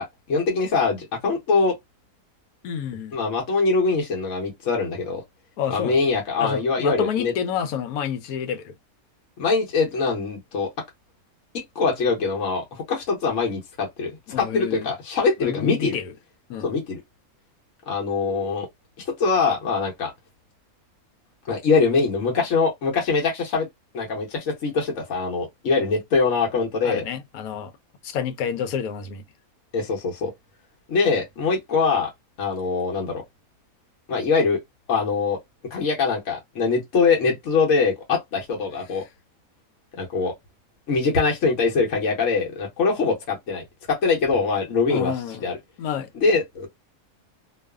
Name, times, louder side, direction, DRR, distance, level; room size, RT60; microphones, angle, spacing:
voice 1, 0.0-1.8 3.1-5.2 5.7-7.3 9.4-10.7 11.5-16.0 16.6-17.0 17.9-18.7 19.0-20.1 21.5-23.7 23.9-27.0 29.7-30.3 30.9-32.1 32.4-33.2 34.1-34.6 34.9-35.4 35.7-39.0 40.0-40.3 40.9-45.6 46.2-46.7, left 4 dB, 60° left, 1.1 m, -23 dB
voice 2, 2.6-3.1 5.6-5.9 6.4-8.7 14.3-14.9 15.4-16.1 16.5-16.7 26.8-27.7 28.0-29.2 44.9-45.4 45.8-46.1, left 8 dB, 85° left, 1.1 m, -29 dB
2.5 x 2.3 x 2.2 m
omnidirectional pair, 1.5 m